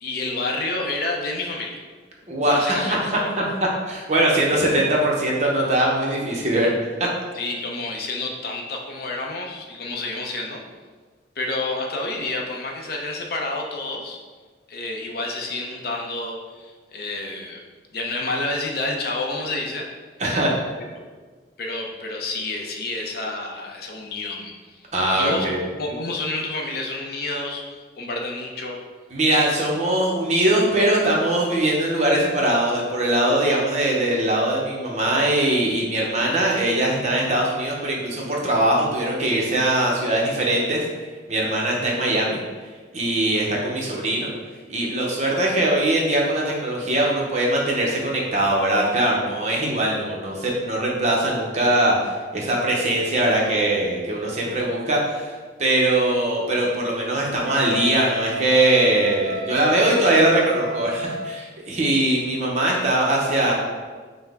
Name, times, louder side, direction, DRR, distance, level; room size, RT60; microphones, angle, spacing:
voice 1, 0.0-1.8 2.5-3.3 7.3-10.6 11.4-14.2 14.7-17.6 17.9-19.9 21.0-21.1 21.6-24.9 25.1-28.8, left 2 dB, 50° left, 0 dB, 0.5 m, -29 dB
voice 2, 2.3-3.0 3.9-6.7 20.2-20.6 24.9-25.6 29.1-40.9 41.3-42.4 42.9-44.3 44.7-55.3 55.6-63.5, right 1 dB, 35° right, -2 dB, 0.7 m, -21 dB
Wind instrument woodwind instrument, 57.5-61.4, left 1 dB, 70° right, 0.4 m, -32 dB
5.5 x 2.1 x 3.4 m, 1.4 s
head